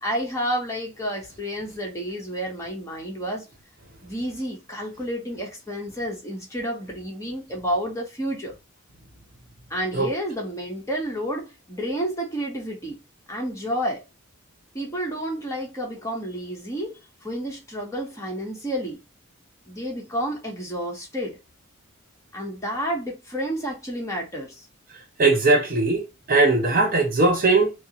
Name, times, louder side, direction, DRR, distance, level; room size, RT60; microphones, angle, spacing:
voice 1, 0.0-3.5 4.0-8.5 9.7-13.0 13.3-14.0 14.7-19.0 19.7-21.4 22.3-24.7, equal, 15° left, 1.1 m, -30 dB
voice 2, 25.2-26.0 26.3-27.7, right 3 dB, 45° right, 0.9 m, -19 dB
5.1 x 2.0 x 3.0 m
head